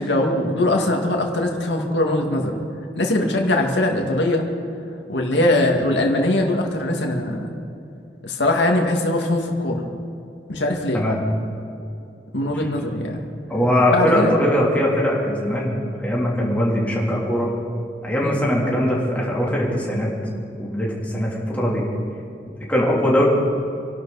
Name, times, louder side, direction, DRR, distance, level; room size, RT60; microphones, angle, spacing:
voice 1, 0.0-2.6 2.9-4.5 5.1-7.5 8.2-9.8 10.5-11.0 12.3-13.2 13.9-14.3 18.2-18.4, left 1 dB, 85° left, 1 dB, 2.3 m, -21 dB
voice 2, 13.5-17.5 18.0-20.1 20.6-21.8 22.7-23.3, equal, 10° left, -5 dB, 3.3 m, -21 dB
27.0 x 12.0 x 4.2 m, 2.7 s
head